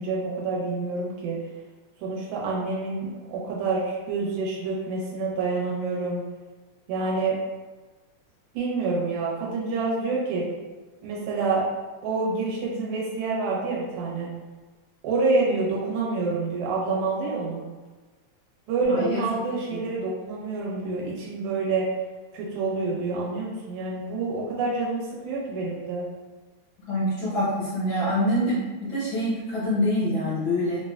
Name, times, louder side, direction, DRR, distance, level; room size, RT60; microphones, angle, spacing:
voice 1, 0.0-1.4 2.0-6.2 6.9-7.4 8.5-10.5 11.0-11.6 12.0-14.3 15.0-17.6 18.7-21.9 22.3-26.1, right 3 dB, 85° right, -5 dB, 2.2 m, -27 dB
voice 2, 18.9-19.2 19.7-19.9 26.9-30.8, left 1 dB, 65° left, -9 dB, 1.7 m, -25 dB
4.6 x 2.3 x 2.2 m, 1.3 s
omnidirectional pair, 3.3 m